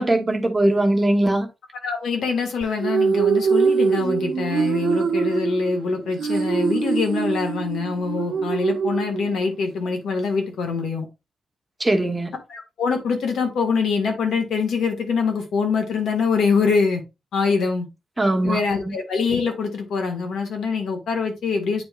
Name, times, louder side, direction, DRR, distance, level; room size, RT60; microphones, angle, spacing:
voice 1, 0.0-1.5 11.8-12.3 18.2-18.9, right 1 dB, 15° right, 1.1 m, -20 dB
voice 2, 1.8-11.1 12.5-17.0 17.3-17.9 18.4-21.8, left 5 dB, 85° left, 1.6 m, -24 dB
sound 1, 2.6-9.6, right 5 dB, 65° right, 0.8 m, -23 dB
8.8 x 4.4 x 2.4 m
cardioid pair, 115°, 0 cm